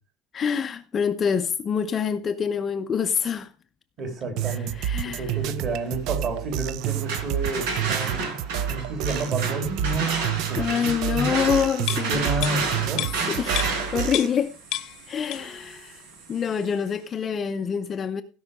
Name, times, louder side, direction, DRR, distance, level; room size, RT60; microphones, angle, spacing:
voice 1, 0.3-3.5 4.5-5.4 10.6-12.2 13.3-14.5 15.1-16.0 16.3-18.2, left 7 dB, 25° left, 0.5 m, -26 dB
voice 2, 4.0-4.7 5.0-8.3 8.7-11.3 11.9-13.3, right 2 dB, 35° right, 3.1 m, -30 dB
sound 1, 4.4-14.3, right 11 dB, 50° right, 0.4 m, -30 dB
sound 2, 6.8-16.6, right 4 dB, 90° right, 4.6 m, -31 dB
sound 3, 11.9-14.5 14.7-15.7 16.0-16.1, left 14 dB, 50° left, 0.8 m, -32 dB
16.5 x 5.5 x 4.9 m
cardioid pair, 170°, 0 cm